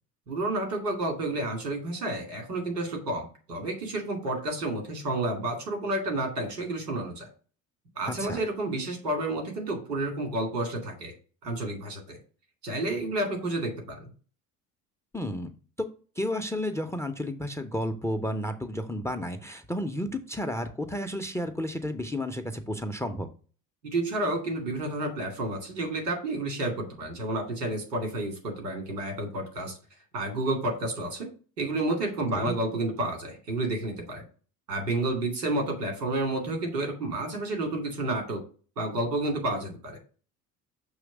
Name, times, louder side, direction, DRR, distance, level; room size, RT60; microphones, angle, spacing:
voice 1, 0.3-7.3 8.0-11.1 11.4-12.2 12.6-14.1 23.8-29.8 30.1-31.3 31.6-34.2 34.7-38.4 38.8-40.0, right 2 dB, 85° right, 2 dB, 2.5 m, -30 dB
voice 2, 8.1-8.4 15.1-15.5 16.2-23.3 32.3-32.6, left 1 dB, 5° left, 9 dB, 0.5 m, -32 dB
6.3 x 3.2 x 5.9 m, 0.38 s
figure-of-eight pair, 65°, 47 cm